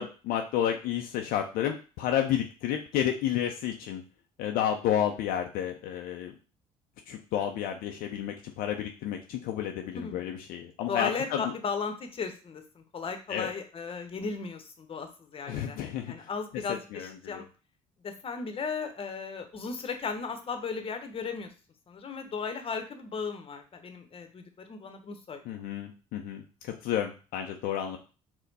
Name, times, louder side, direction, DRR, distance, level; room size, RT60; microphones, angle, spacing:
voice 1, 0.0-4.0 4.4-6.3 7.1-11.4 13.3-13.5 15.5-16.3 16.7-17.4 25.4-28.0, left 10 dB, 65° left, 3 dB, 0.5 m, -31 dB
voice 2, 10.9-15.8 16.1-17.4 18.0-21.5 21.9-25.4, left 5 dB, 35° left, 7 dB, 0.9 m, -36 dB
4.2 x 2.2 x 4.0 m, 0.35 s
hypercardioid pair, 60°, 16 cm